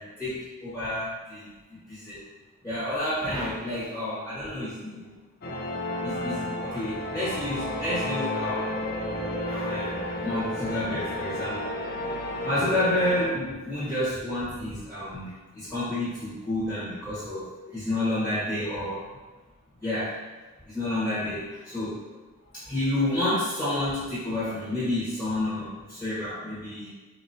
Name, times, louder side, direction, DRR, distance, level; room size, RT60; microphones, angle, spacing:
voice 1, 0.0-1.5 1.9-2.2 2.6-5.1 6.0-8.7 9.5-11.6 12.4-19.0 19.8-20.2 20.6-22.1 22.5-26.9, left 1 dB, 5° left, -13 dB, 1.4 m, -30 dB
sound 1, 5.4-13.3, left 1 dB, 45° left, 0.4 m, -32 dB
4.5 x 3.0 x 2.7 m, 1.2 s
head